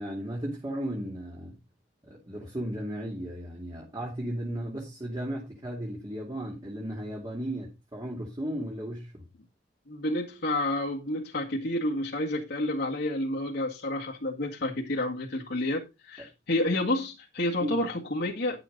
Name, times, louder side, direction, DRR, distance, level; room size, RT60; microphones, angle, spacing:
voice 1, 0.0-1.5 2.0-9.2 17.6-17.8, right 1 dB, 25° right, 2.8 m, -35 dB
voice 2, 9.9-18.6, left 1 dB, 65° left, 2.0 m, -30 dB
11.0 x 7.4 x 4.0 m
head